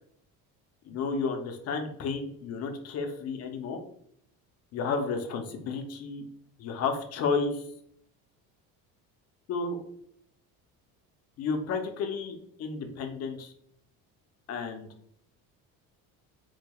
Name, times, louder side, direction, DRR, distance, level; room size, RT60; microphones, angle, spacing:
voice 1, 0.8-3.8 4.7-6.2 6.6-7.6 9.5-9.8 11.4-13.5 14.5-14.9, left 4 dB, 45° left, 5 dB, 0.6 m, -32 dB
3.9 x 3.1 x 2.2 m, 0.68 s
cardioid pair, 155°, 36 cm